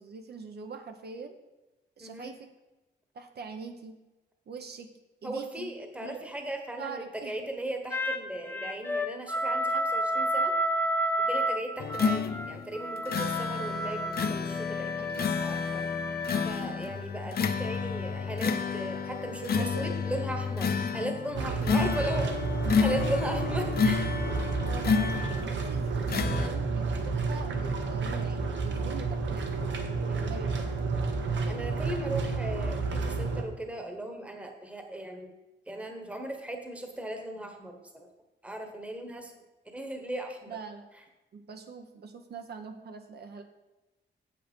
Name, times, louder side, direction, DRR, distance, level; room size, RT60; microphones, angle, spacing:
voice 1, 0.0-1.4 2.0-2.5 3.1-3.9 4.5-4.9 5.2-5.7 6.0-6.2 6.8-7.3 15.0-15.7 19.3-20.0 24.6-29.6 30.2-30.7 40.5-40.9 41.3-43.4, right 5 dB, 60° right, 5 dB, 0.9 m, -43 dB
voice 2, 2.0-2.3 5.2-10.6 11.2-15.8 16.4-22.3 22.7-24.1 29.9-30.4 31.5-35.3 35.7-38.1 38.4-39.3 39.6-40.6, right 1 dB, 5° right, 4 dB, 1.2 m, -37 dB
sound 1, 7.9-16.5, equal, 10° left, 0.5 m, -31 dB
sound 2, 11.8-25.6 26.1-26.5, left 6 dB, 55° left, 0.7 m, -30 dB
sound 3, 21.3-33.4, right 4 dB, 75° right, 1.4 m, -30 dB
8.6 x 7.8 x 5.3 m, 1.0 s
wide cardioid pair, 165°, 19 cm